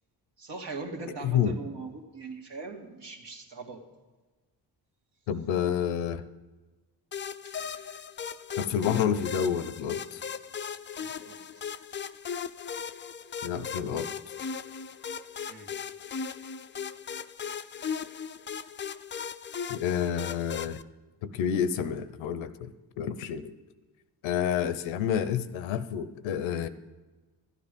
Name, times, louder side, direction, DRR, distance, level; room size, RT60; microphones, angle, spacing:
voice 1, 0.4-3.8 7.4-8.1 11.0-11.6 15.5-15.7, right 3 dB, 65° right, 2 dB, 2.0 m, -41 dB
voice 2, 1.2-1.6 5.3-6.2 8.6-10.2 13.4-14.1 19.7-20.8 21.2-22.7 23.0-23.5 24.2-26.7, left 8 dB, 85° left, 14 dB, 0.7 m, -29 dB
sound 1, 7.1-20.8, left 6 dB, 25° left, 0.4 m, -38 dB
12.5 x 9.2 x 5.2 m, 1.2 s
supercardioid pair, 55°, 46 cm